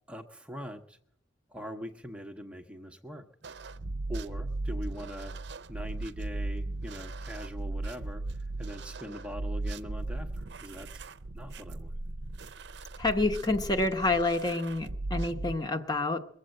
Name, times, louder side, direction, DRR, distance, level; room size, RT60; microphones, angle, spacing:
voice 1, 0.1-1.0 1.5-3.2 4.1-5.3 5.7-10.9 11.3-11.9, equal, 5° right, 3 dB, 0.7 m, -42 dB
sound 1, 3.4-15.5, right 2 dB, 70° right, 0.6 m, -37 dB
voice 2, 13.0-16.2, left 2 dB, 20° left, 5 dB, 1.0 m, -28 dB
22.0 x 7.9 x 7.6 m, 0.71 s
head